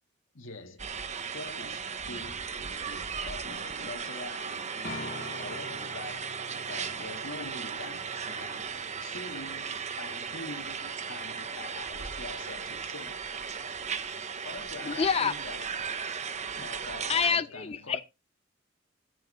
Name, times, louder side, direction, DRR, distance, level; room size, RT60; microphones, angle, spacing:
voice 1, 0.3-1.0 1.3-13.3 14.4-15.8 16.6-18.0, left 2 dB, 85° left, 2.1 m, -44 dB
sound 1, 0.8-17.3, right 6 dB, 35° right, 1.0 m, -36 dB
sound 2, 4.8-16.6, left 1 dB, 50° left, 1.7 m, -49 dB
voice 2, 14.9-15.3 17.1-18.0, left 6 dB, 30° left, 0.4 m, -27 dB
13.5 x 4.9 x 5.0 m
head